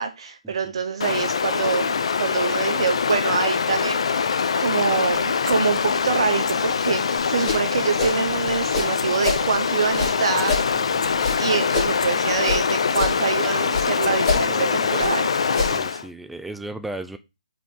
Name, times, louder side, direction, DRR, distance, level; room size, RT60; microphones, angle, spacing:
voice 1, 0.0-4.3 4.6-10.6 11.4-15.3, right 5 dB, 50° right, 1.0 m, -25 dB
Stream, 1.0-16.1, left 6 dB, 55° left, 0.6 m, -23 dB
sound 1, 5.4-5.6 6.3-6.5 7.0-7.1 8.9-9.1 9.4-9.5 10.1-10.2 10.4-10.5 10.9-11.1 11.6-12.1 12.6-13.1 13.7-13.8 14.0-14.3 14.7-14.8, left 4 dB, 75° left, 1.0 m, -36 dB
sound 2, 7.3-9.5 9.9-12.6 12.9-13.9 14.2-16.0, left 3 dB, 20° left, 2.7 m, -28 dB
voice 2, 10.7-11.2 14.4-15.1 15.6-17.2, right 2 dB, ahead, 0.4 m, -36 dB
5.1 x 4.7 x 5.4 m
hypercardioid pair, 160°, 4 cm